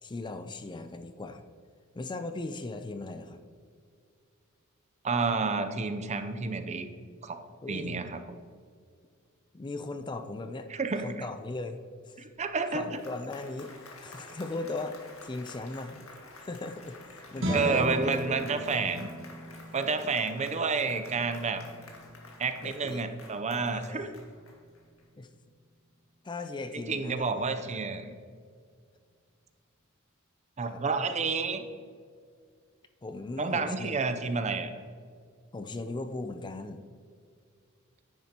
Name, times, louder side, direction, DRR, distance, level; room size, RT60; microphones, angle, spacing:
voice 1, 0.0-1.4 1.9-3.4 7.6-8.0 9.5-10.7 11.0-11.8 12.0-12.3 12.7-16.1 16.4-19.0 20.0-20.1 22.6-23.1 23.7-24.2 25.2-25.3 26.2-27.8 30.7-30.8 33.0-34.0 35.5-36.8, left 2 dB, 20° left, 8 dB, 0.4 m, -38 dB
voice 2, 5.0-6.9 7.2-7.4 7.7-8.4 10.7-11.2 12.2-13.0 17.5-19.1 19.7-21.6 22.4-24.1 26.7-28.1 30.6-31.6 33.4-34.7, right 4 dB, 35° right, 8 dB, 0.6 m, -30 dB
Applause, 12.6-25.0, left 3 dB, 75° left, 1.8 m, -51 dB
sound 1, 17.3-23.7, right 1 dB, 65° right, 1.6 m, -38 dB
10.5 x 9.4 x 2.9 m, 2.1 s
head